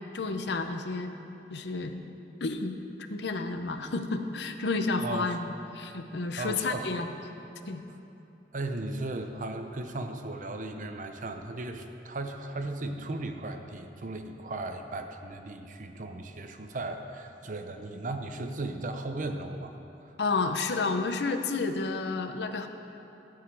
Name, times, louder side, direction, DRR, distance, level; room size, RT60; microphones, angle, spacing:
voice 1, 0.1-1.1 1.5-2.0 2.4-2.7 3.1-7.1 7.7-7.8 20.2-22.7, left 3 dB, 75° left, 7 dB, 0.7 m, -31 dB
voice 2, 6.4-7.0 8.5-19.7 20.0-20.2, right 2 dB, 45° right, 6 dB, 0.6 m, -36 dB
13.0 x 4.8 x 7.7 m, 2.9 s
head